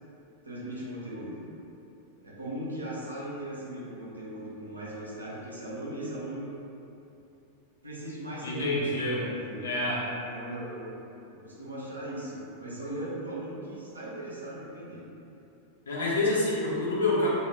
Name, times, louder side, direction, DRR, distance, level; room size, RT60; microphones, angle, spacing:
voice 1, 0.4-1.4 2.2-6.4 7.8-8.7 9.1-9.7 10.3-11.0 11.4-15.0, right 1 dB, 80° right, -7 dB, 0.6 m, -38 dB
voice 2, 8.4-9.3 9.6-10.1 15.9-17.3, left 2 dB, 70° left, -6 dB, 0.6 m, -27 dB
2.3 x 2.1 x 3.4 m, 2.9 s
figure-of-eight pair, 90°, 0 cm